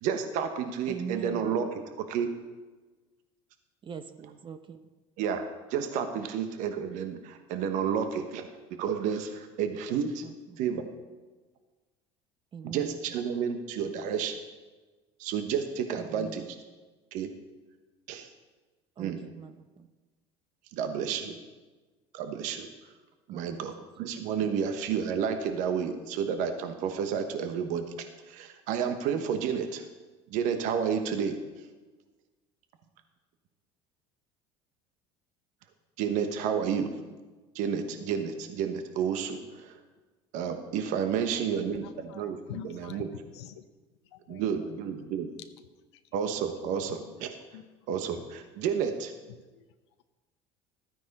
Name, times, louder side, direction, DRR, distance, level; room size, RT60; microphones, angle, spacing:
voice 1, 0.0-1.7 2.1-2.3 5.2-5.4 5.7-10.2 10.6-10.9 12.6-14.4 15.2-16.4 17.1-17.3 18.1-18.3 19.0-19.2 20.7-21.3 22.1-22.7 23.3-29.8 30.3-31.4 36.0-36.9 37.5-39.7 40.3-42.4 42.6-43.1 44.3-45.3 46.1-47.3 47.9-49.1, right 7 dB, 65° right, 7 dB, 1.1 m, -31 dB
voice 2, 0.9-1.5 3.8-4.9 6.1-6.2 10.2-10.7 12.5-13.0 13.8-14.2 16.0-16.5 19.0-19.9 21.2-21.4 23.3-24.1 24.4-24.5, right 6 dB, 35° right, 9 dB, 0.8 m, -43 dB
voice 3, 41.3-43.1 43.3-43.6 44.1-44.8 45.9-46.0 46.9-47.0 47.5-47.7 49.3-49.7, left 10 dB, 90° left, 8 dB, 0.7 m, -46 dB
13.0 x 9.2 x 4.2 m, 1.3 s
supercardioid pair, 85°, 14 cm